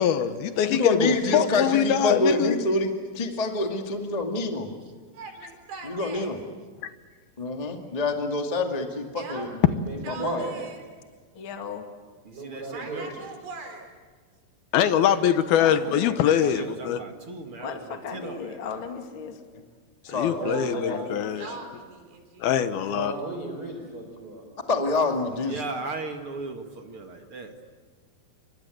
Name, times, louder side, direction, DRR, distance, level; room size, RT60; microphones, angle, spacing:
voice 1, 0.0-2.6 14.7-17.0 20.1-21.5 22.4-23.1, left 9 dB, 70° left, 2.8 m, -23 dB
voice 2, 0.7-2.9 3.1-4.7 5.9-6.4 7.4-9.5 10.2-10.4 20.1-20.4 24.7-25.6, left 2 dB, 20° left, 1.0 m, -26 dB
voice 3, 5.1-6.4 9.1-9.5 10.0-10.8 12.6-13.9 20.0-22.8, right 3 dB, 80° right, 6.1 m, -41 dB
voice 4, 9.9-10.5 12.3-13.0 20.3-21.1 22.9-24.4, right 2 dB, 25° right, 4.1 m, -34 dB
voice 5, 11.3-11.9 15.5-16.2 17.6-19.4 20.5-21.7, left 6 dB, 35° left, 2.4 m, -37 dB
voice 6, 12.2-13.1 16.4-18.6 25.4-27.7, right 3 dB, 45° right, 2.0 m, -37 dB
29.0 x 24.5 x 8.0 m
omnidirectional pair, 4.8 m